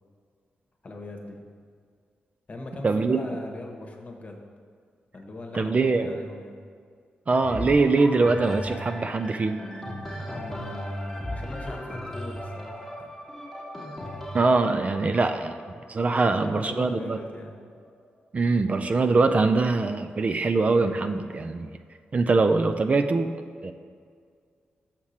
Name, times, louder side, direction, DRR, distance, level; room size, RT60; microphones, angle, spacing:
voice 1, 0.8-1.4 2.5-4.4 5.1-6.6 10.2-12.8 16.2-17.6, left 2 dB, 40° left, 2 dB, 1.1 m, -40 dB
voice 2, 2.8-3.2 5.5-6.1 7.3-9.6 14.3-15.6 15.9-17.2 18.3-21.7 22.1-23.4 23.6-23.7, right 3 dB, 40° right, 7 dB, 0.4 m, -23 dB
sound 1, 7.4-17.2 17.9-18.0, equal, 5° left, 1.3 m, -37 dB
6.3 x 5.9 x 4.3 m, 2.1 s
cardioid pair, 65°, 4 cm